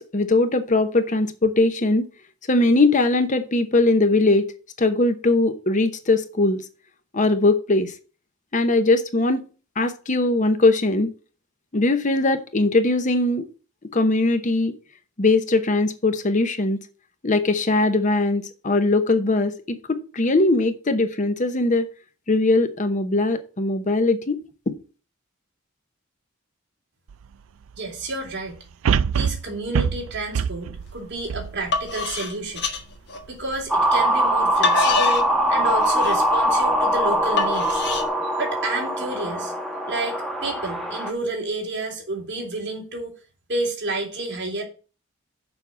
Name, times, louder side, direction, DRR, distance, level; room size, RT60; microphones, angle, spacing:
voice 1, 0.0-2.0 2.5-4.5 4.8-6.6 7.1-7.9 8.5-9.4 9.8-11.1 11.7-13.5 13.9-14.7 15.2-16.8 17.2-21.9 22.3-24.4 24.7-24.8, left 2 dB, 35° left, 0.9 m, -20 dB
sound 1, 27.1-27.2 28.8-32.2 32.7-32.8, right 7 dB, 85° right, 0.4 m, -24 dB
voice 2, 27.7-28.6 29.1-32.7 33.3-37.8 38.4-39.5 39.9-43.2 43.5-44.6, right 2 dB, 55° right, 3.3 m, -30 dB
sound 2, 30.9-31.1 31.5-33.6 34.2-38.1, left 4 dB, 55° left, 1.6 m, -26 dB
sound 3, 33.7-41.1, right 1 dB, ahead, 1.4 m, -22 dB
7.0 x 5.4 x 7.2 m
head